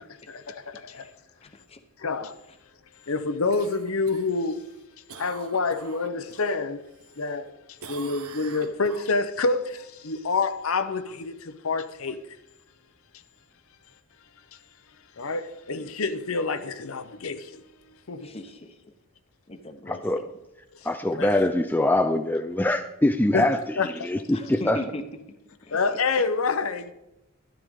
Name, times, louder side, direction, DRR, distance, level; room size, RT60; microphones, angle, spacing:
voice 1, 0.3-1.1 2.0-2.4 3.1-4.6 5.2-6.8 7.2-7.5 7.9-11.3 11.6-12.2 15.2-17.4 18.1-18.3 21.1-21.3 23.3-23.5 23.8-24.1 25.7-26.9, left 4 dB, 75° left, 0.8 m, -27 dB
voice 2, 1.4-1.8 18.2-18.8 19.5-20.0 24.3-25.0 25.7-25.8, left 1 dB, 25° left, 1.0 m, -38 dB
Cough, 3.5-6.5 6.9-7.5 7.8-9.5 13.9-14.0, right 5 dB, 80° right, 1.3 m, -45 dB
voice 3, 19.9-20.2 20.8-24.8, left 1 dB, 10° left, 0.4 m, -24 dB
13.0 x 11.5 x 3.7 m
head